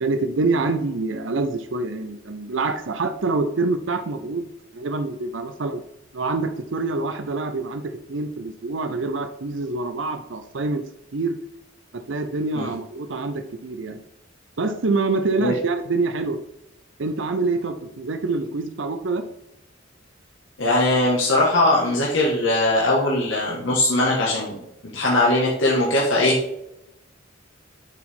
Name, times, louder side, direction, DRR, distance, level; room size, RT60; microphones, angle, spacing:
voice 1, 0.0-4.5 4.7-5.8 6.1-10.8 11.1-11.4 12.1-14.0 14.6-16.4 17.0-19.2, right 3 dB, 70° right, 8 dB, 0.6 m, -26 dB
voice 2, 20.6-26.4, left 1 dB, 75° left, -5 dB, 1.6 m, -20 dB
7.9 x 4.8 x 3.7 m, 0.85 s
head